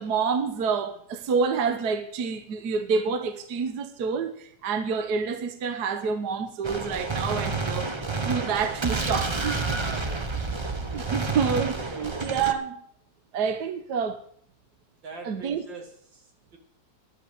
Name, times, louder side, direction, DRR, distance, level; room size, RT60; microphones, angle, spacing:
voice 1, 0.0-7.9 8.2-9.6 10.9-12.8 13.3-14.2 15.2-15.6, right 5 dB, 65° right, 1.5 m, -28 dB
Gunshot gunfire, 6.6-12.5, right 3 dB, 25° right, 0.6 m, -29 dB
voice 2, 10.0-10.5 11.9-12.4 15.0-16.6, right 3 dB, 90° right, 3.1 m, -43 dB
10.5 x 8.0 x 9.0 m
omnidirectional pair, 2.0 m